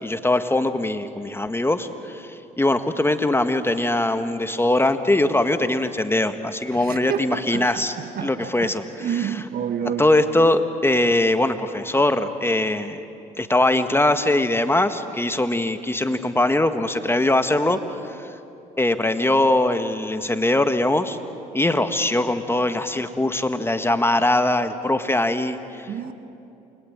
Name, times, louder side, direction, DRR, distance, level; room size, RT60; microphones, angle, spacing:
voice 1, 0.0-8.0 8.2-8.8 10.0-13.0 13.4-18.3 18.8-21.2 21.5-25.9, left 1 dB, 10° left, 9 dB, 1.7 m, -21 dB
voice 2, 6.7-10.1 25.9-26.1, right 8 dB, 50° right, 9 dB, 1.7 m, -29 dB
29.0 x 22.0 x 9.0 m, 2.8 s
hypercardioid pair, 55°, 19 cm